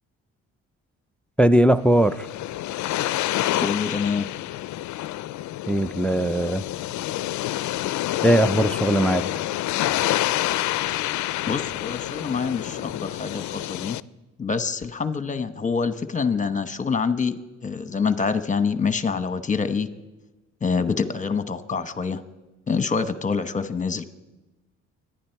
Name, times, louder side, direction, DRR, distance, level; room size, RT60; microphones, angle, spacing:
voice 1, 1.4-2.3 5.7-6.6 8.2-9.5, right 1 dB, 5° left, 14 dB, 0.4 m, -19 dB
sound 1, 1.7-14.0, left 15 dB, 70° left, 0.5 m, -28 dB
voice 2, 3.6-4.3 11.5-14.0 14.4-17.4 17.6-19.9 20.6-22.2 22.7-24.0, left 5 dB, 25° left, 10 dB, 1.1 m, -26 dB
25.0 x 10.5 x 4.6 m, 1.1 s
cardioid pair, 90°, 30 cm